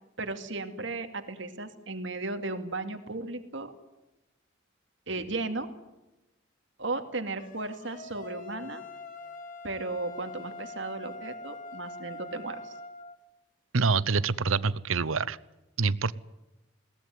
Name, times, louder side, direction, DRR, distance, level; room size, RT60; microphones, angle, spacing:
voice 1, 0.2-3.7 5.1-5.7 6.8-8.8 9.6-12.7, right 2 dB, 65° right, 7 dB, 2.4 m, -35 dB
sound 1, 7.4-13.2, left 2 dB, 40° left, 2.2 m, -43 dB
voice 2, 13.7-15.4 15.8-16.1, right 4 dB, 85° right, 18 dB, 0.9 m, -26 dB
21.5 x 19.0 x 9.5 m, 0.98 s
head